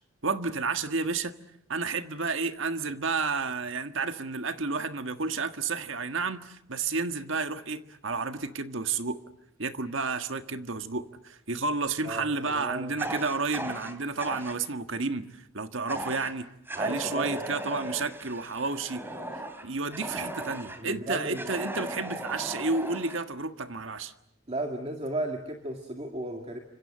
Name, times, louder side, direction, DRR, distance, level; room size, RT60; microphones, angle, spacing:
voice 1, 0.2-1.3 1.7-9.2 9.6-16.5 16.7-19.0 19.6-24.1, right 4 dB, 65° right, 9 dB, 1.6 m, -31 dB
voice 2, 12.1-12.9 16.7-17.4 20.8-21.5 24.5-26.6, right 1 dB, 30° right, 3 dB, 2.2 m, -34 dB
Fire, 13.0-14.6 15.9-16.3 16.7-20.8 21.3-23.2, right 1 dB, 10° right, 3.1 m, -37 dB
29.5 x 26.0 x 7.6 m, 0.78 s
head